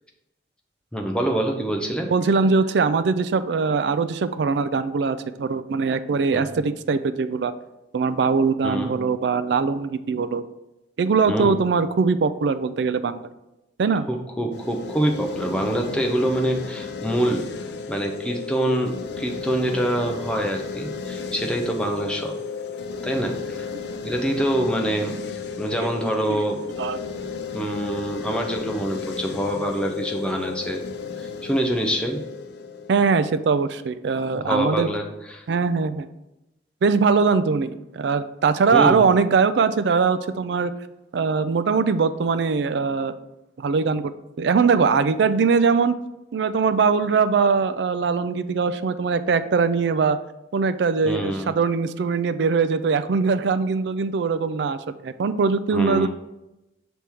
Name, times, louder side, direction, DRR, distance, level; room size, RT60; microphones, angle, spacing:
voice 1, 0.9-2.1 6.3-6.6 8.6-8.9 11.3-11.6 14.1-17.4 17.9-22.4 23.0-23.7 24.0-25.1 25.6-26.6 27.5-30.8 31.2-32.2 34.4-35.4 38.7-39.0 51.0-51.5 55.7-56.1, right 1 dB, 5° left, 1 dB, 0.6 m, -25 dB
voice 2, 2.1-7.5 7.9-10.4 11.0-13.3 13.8-14.1 26.3-26.4 26.8-27.0 32.9-34.9 35.5-36.1 36.8-40.7 41.1-43.1 43.6-44.1 44.4-46.0 46.3-50.2 50.5-56.1, right 5 dB, 65° right, 12 dB, 0.3 m, -21 dB
sound 1, 14.5-33.6, left 5 dB, 60° left, 0.5 m, -34 dB
6.1 x 3.5 x 4.4 m, 0.94 s
head